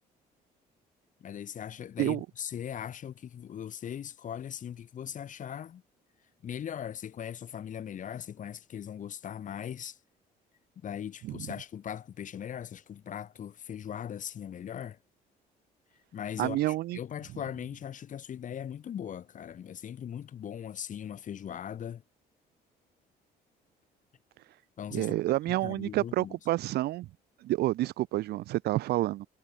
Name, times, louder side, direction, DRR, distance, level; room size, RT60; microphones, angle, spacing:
voice 1, 1.2-5.8 6.4-10.0 10.8-15.0 16.1-22.0 24.8-25.2 25.5-26.3, left 9 dB, 50° left, 3.2 m, -39 dB
voice 2, 16.4-17.0 24.9-27.1 27.4-29.3, right 16 dB, 75° right, 0.9 m, -29 dB
cardioid pair, 110°, 17 cm